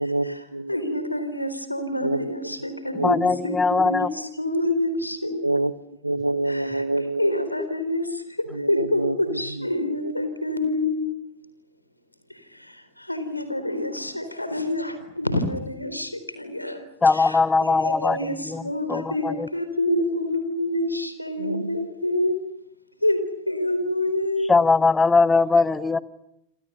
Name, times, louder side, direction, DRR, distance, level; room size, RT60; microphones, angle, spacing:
voice 1, 0.0-1.2 2.0-2.5 2.9-3.4 3.8-3.9 5.4-5.7 6.0-7.5 8.5-10.1 21.4-21.9, right 2 dB, 85° right, 17 dB, 1.0 m, -28 dB
voice 2, 0.7-5.5 6.5-6.8 7.2-11.1 12.3-22.4 23.0-24.5, left 1 dB, 90° left, 10 dB, 4.0 m, -27 dB
voice 3, 3.0-4.1 17.0-18.2 18.4-18.6 18.9-19.5 24.5-26.0, left 4 dB, 15° left, 18 dB, 1.2 m, -20 dB
28.5 x 26.5 x 6.8 m, 0.80 s
figure-of-eight pair, 90°, 0 cm